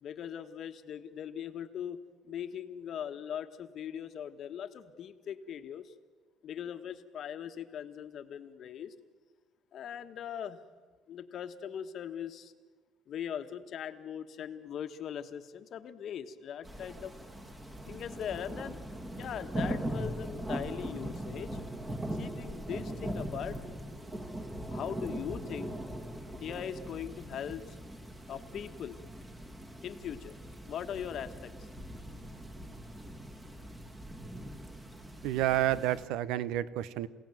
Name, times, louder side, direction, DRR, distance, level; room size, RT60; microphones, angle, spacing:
voice 1, 0.0-5.9 6.4-8.9 9.7-10.6 11.1-12.5 13.1-17.1 17.9-18.8 19.1-21.6 22.1-23.6 24.7-25.8 26.4-27.8 28.3-29.0 29.8-30.4 30.7-31.5, left 9 dB, 45° left, 8 dB, 1.4 m, -40 dB
sound 1, 16.6-36.1, right 1 dB, 15° right, 1.8 m, -40 dB
voice 2, 35.2-37.1, right 13 dB, 85° right, 17 dB, 0.9 m, -30 dB
28.0 x 17.0 x 9.2 m, 1.4 s
cardioid pair, 165°, 0 cm